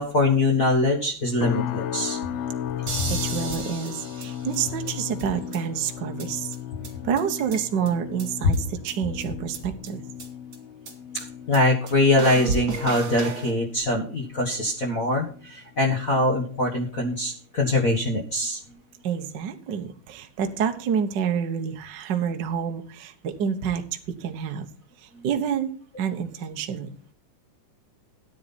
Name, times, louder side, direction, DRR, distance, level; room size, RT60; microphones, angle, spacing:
voice 1, 0.0-2.2 11.1-18.6, left 2 dB, 45° left, 1 dB, 1.0 m, -23 dB
sound 1, 1.4-16.6 17.0-17.4 17.8-18.0, left 10 dB, 80° left, 1.4 m, -36 dB
sound 2, 2.9-4.9 5.2-5.3 5.5-5.6 5.9-6.0 6.2-6.3 6.5-6.6 6.8-6.9 7.2-7.9 8.2-8.3 8.5-8.6 8.9-9.0 9.2-9.3 9.5-9.6 9.9-10.0 10.2-10.3 10.5-10.6 10.9-11.0 11.2-11.3 11.5-11.6 11.9-12.0 12.2-13.5, right 4 dB, 40° right, 3.0 m, -33 dB
voice 2, 3.1-6.6 7.0-10.0 19.0-24.7 25.2-25.7 26.0-26.9, right 7 dB, 75° right, 6 dB, 1.0 m, -28 dB
13.0 x 9.5 x 4.2 m, 0.42 s
omnidirectional pair, 3.8 m